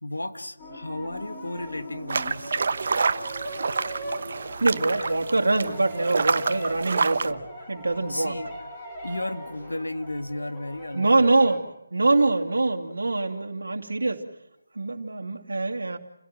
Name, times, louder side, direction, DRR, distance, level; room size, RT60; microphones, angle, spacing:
voice 1, 0.0-2.5 4.1-4.4 5.0-5.1 6.9-7.0 7.3-7.4 7.9-8.5 9.0-11.4, left 1 dB, 80° left, 8 dB, 1.9 m, -34 dB
sound 1, 0.6-11.6, equal, 10° left, 4.8 m, -40 dB
sound 2, 2.1-7.3, right 4 dB, 45° right, 0.9 m, -28 dB
voice 2, 4.6-8.4 10.9-11.6 11.9-14.3 14.7-16.0, right 2 dB, 65° right, 3 dB, 2.6 m, -24 dB
29.5 x 17.0 x 7.6 m, 0.89 s
figure-of-eight pair, 155°, 0 cm